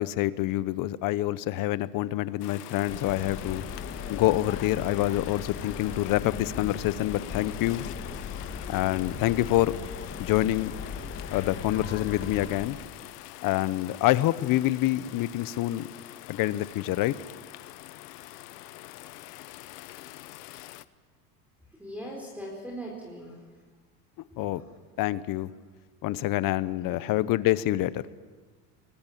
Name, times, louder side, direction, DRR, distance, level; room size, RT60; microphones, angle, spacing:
voice 1, 0.0-3.6 4.1-7.9 8.7-9.7 10.2-10.7 11.3-12.8 13.4-15.9 16.3-17.2 24.4-24.6 25.0-25.5 26.0-28.0, left 15 dB, 45° left, 17 dB, 1.0 m, -26 dB
sound 1, 2.4-20.8, left 17 dB, 90° left, 1.0 m, -45 dB
sound 2, 2.9-12.7, left 6 dB, 30° left, 2.4 m, -38 dB
voice 2, 21.7-23.4 24.4-24.7 26.6-27.1, equal, 5° right, -1 dB, 4.4 m, -41 dB
24.5 x 20.0 x 8.7 m, 1.4 s
supercardioid pair, 125°, 46 cm